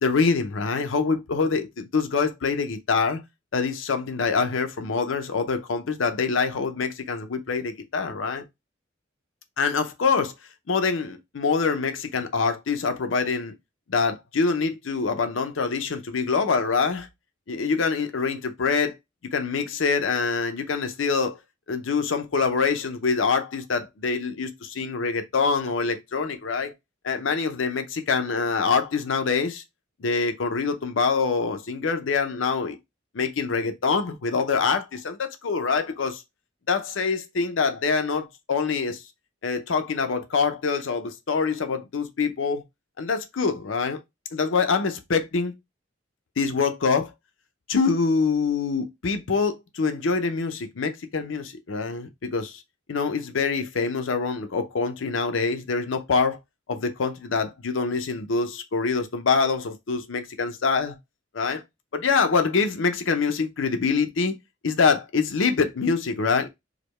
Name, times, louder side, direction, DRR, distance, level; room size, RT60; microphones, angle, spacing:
voice 1, 0.0-3.2 3.5-8.4 9.6-10.3 10.7-13.5 13.9-17.1 17.5-19.0 19.3-21.4 21.7-26.7 27.0-29.6 30.0-32.8 33.1-36.2 36.7-39.0 39.4-42.6 43.0-44.0 44.3-45.5 46.4-47.1 47.7-52.6 52.9-56.4 56.7-61.0 61.3-61.6 61.9-64.3 64.6-66.5, left 5 dB, 85° left, 0.6 m, -25 dB
4.9 x 2.1 x 3.0 m
head